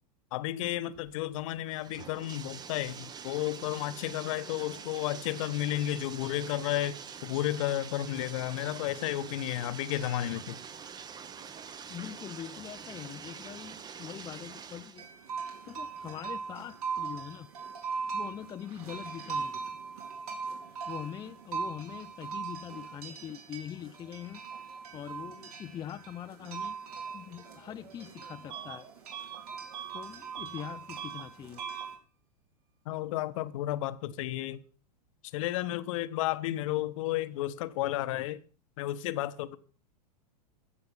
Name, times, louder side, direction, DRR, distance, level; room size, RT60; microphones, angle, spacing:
voice 1, 0.3-7.0 7.2-10.6 32.8-34.6 35.3-38.4 38.8-39.6, left 14 dB, 50° left, 1.0 m, -32 dB
Bathtub (filling or washing), 1.0-15.0, right 7 dB, 20° right, 0.9 m, -45 dB
voice 2, 11.9-15.0 15.4-17.5 18.1-19.8 20.9-24.4 24.9-26.8 27.1-28.9 29.9-31.6, left 10 dB, 20° left, 0.6 m, -43 dB
sound 1, 15.0-32.0, right 5 dB, 65° right, 3.9 m, -40 dB
Bus / Alarm, 28.5-28.8 29.1-30.7 30.9-31.3 31.6-31.9, right 10 dB, 45° right, 1.6 m, -42 dB
15.0 x 6.8 x 7.2 m
figure-of-eight pair, 100°, 21 cm